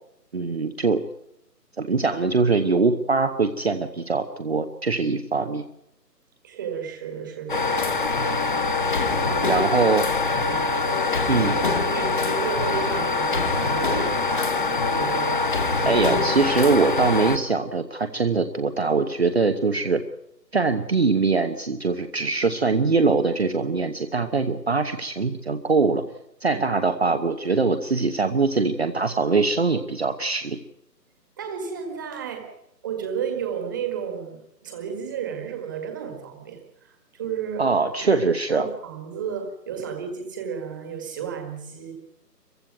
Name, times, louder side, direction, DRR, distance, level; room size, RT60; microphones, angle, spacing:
voice 1, 0.3-1.0 1.8-5.6 9.5-10.0 11.3-11.6 15.8-20.0 20.5-26.0 26.4-30.6 37.6-38.7, right 4 dB, 40° right, 8 dB, 1.1 m, -22 dB
voice 2, 6.4-8.1 8.9-9.6 10.3-11.0 11.3-16.0 26.5-26.6 31.4-32.5 32.8-37.7 38.1-38.2 38.5-41.9, right 7 dB, 10° right, 5 dB, 1.8 m, -33 dB
sound 1, 7.5-17.4, left 3 dB, 30° left, 1.3 m, -24 dB
22.5 x 15.5 x 9.1 m, 0.80 s
figure-of-eight pair, 165°, 50 cm